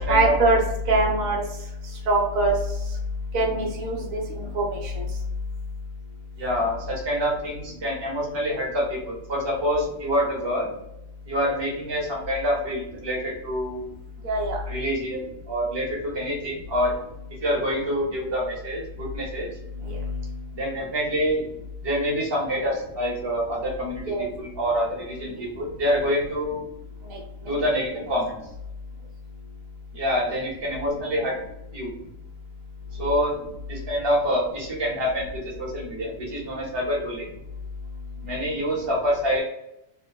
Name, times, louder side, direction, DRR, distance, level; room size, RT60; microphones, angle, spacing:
voice 1, 0.1-0.6 0.9-1.4 2.1-2.5 3.3-5.0 14.2-14.6 19.8-20.3 24.1-24.2 27.1-27.2 33.0-33.1, right 2 dB, 80° right, 0 dB, 1.1 m, -23 dB
voice 2, 6.4-10.7 11.3-13.8 14.7-16.9 17.4-19.5 20.5-21.4 21.8-24.0 24.4-26.6 27.4-28.3 29.9-31.3 31.7-31.9 33.0-33.4 33.7-37.3 38.2-39.4, equal, 25° right, -3 dB, 0.6 m, -26 dB
2.9 x 2.1 x 2.2 m, 0.83 s
omnidirectional pair, 1.4 m